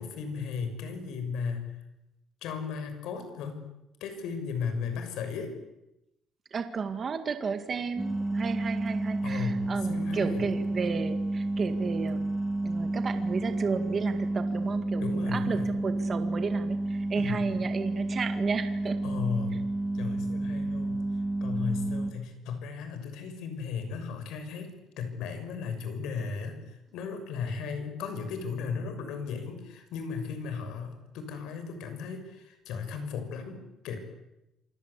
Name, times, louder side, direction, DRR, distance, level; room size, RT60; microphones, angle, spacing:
voice 1, 0.0-1.7 2.4-3.6 4.0-5.5 9.2-10.5 15.0-15.7 17.2-17.4 19.0-19.6 19.9-21.0 21.4-34.0, left 5 dB, 80° left, 8 dB, 6.3 m, -35 dB
voice 2, 6.5-12.3 12.6-19.0, right 5 dB, 30° right, 7 dB, 2.0 m, -33 dB
sound 1, 8.0-22.1, right 2 dB, 5° right, 2.5 m, -30 dB
27.5 x 25.5 x 8.4 m, 0.91 s
cardioid pair, 165°, 0 cm